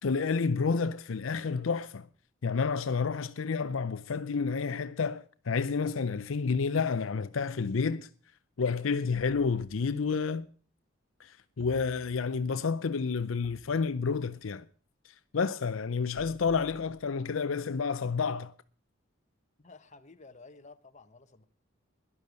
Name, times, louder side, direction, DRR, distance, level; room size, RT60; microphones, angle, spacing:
voice 1, 0.0-2.1 2.4-8.1 8.6-10.5 11.2-14.7 15.0-18.5, left 5 dB, 75° left, 0.5 m, -30 dB
sound 1, 13.4-14.5 16.1-17.6, right 1 dB, 45° right, 2.0 m, -56 dB
voice 2, 19.6-21.4, left 3 dB, 35° left, 1.1 m, -53 dB
12.0 x 11.0 x 6.4 m
head